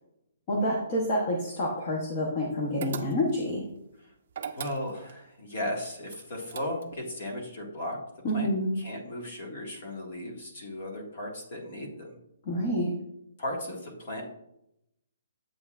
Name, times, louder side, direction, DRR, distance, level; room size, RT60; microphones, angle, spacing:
voice 1, 0.5-3.6 8.2-8.7 12.5-12.9, equal, 25° left, -2 dB, 0.9 m, -28 dB
sound 1, 2.8-3.5 4.3-5.2 6.1-7.1, right 7 dB, 35° right, 0.5 m, -40 dB
voice 2, 4.5-8.0 8.3-8.5 8.8-12.1 13.4-14.2, left 1 dB, 40° left, 1 dB, 1.7 m, -36 dB
8.0 x 7.6 x 2.4 m, 0.80 s
hypercardioid pair, 180°, 0 cm